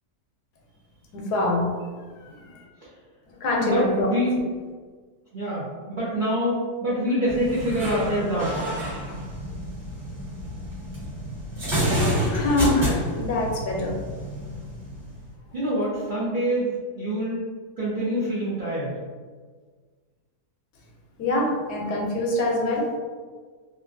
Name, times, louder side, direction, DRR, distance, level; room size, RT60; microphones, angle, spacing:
voice 1, 1.1-1.7 2.2-2.6 3.4-4.1 12.2-14.0 21.2-22.9, left 2 dB, 75° left, -1 dB, 1.1 m, -25 dB
voice 2, 3.6-4.4 5.3-8.6 15.5-17.4 17.8-19.0, equal, 65° right, -9 dB, 0.5 m, -25 dB
sound 1, 7.3-15.3, equal, 45° right, 1.5 m, -29 dB
3.1 x 2.4 x 2.5 m, 1.5 s
omnidirectional pair, 1.8 m